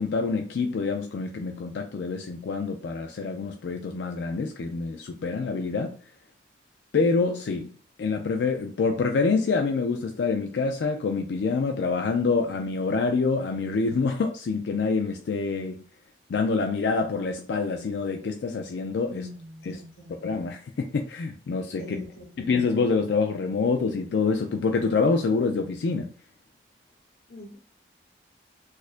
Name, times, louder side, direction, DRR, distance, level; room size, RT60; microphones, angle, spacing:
voice 1, 0.0-6.0 6.9-7.7 8.0-15.8 16.3-19.3 19.7-19.8 20.2-21.8 22.4-26.1, left 4 dB, 80° left, 0.4 m, -26 dB
voice 2, 19.1-20.2 21.8-22.5 27.3-27.6, left 2 dB, 60° left, 1.0 m, -42 dB
4.1 x 2.5 x 2.5 m
head